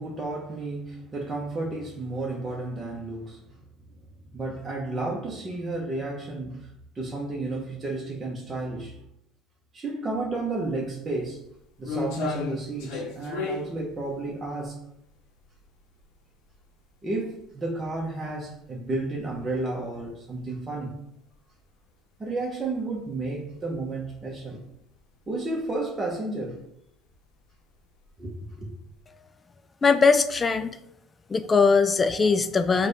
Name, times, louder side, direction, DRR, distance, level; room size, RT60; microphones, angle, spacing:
voice 1, 0.0-3.4 4.3-9.0 9.7-11.4 11.8-14.8 17.0-20.9 22.2-24.6 25.3-26.6 28.2-28.7, right 2 dB, 25° right, 0.8 m, -32 dB
sound 1, 10.5-10.6 11.1-16.1 16.5-16.6 17.3-17.5 17.8-17.9 18.8-18.9 19.2-19.4 19.9-20.1 20.4-20.5 22.6-22.7 24.0-24.3 24.7-25.1 25.5-25.7 26.0-26.1 27.1-27.3 28.0-28.7 29.0-29.1, left 3 dB, 70° left, 0.7 m, -33 dB
voice 2, 29.8-30.8 31.3-32.9, left 4 dB, 30° left, 0.3 m, -20 dB
3.2 x 2.2 x 4.0 m
hypercardioid pair, 70°, 0 cm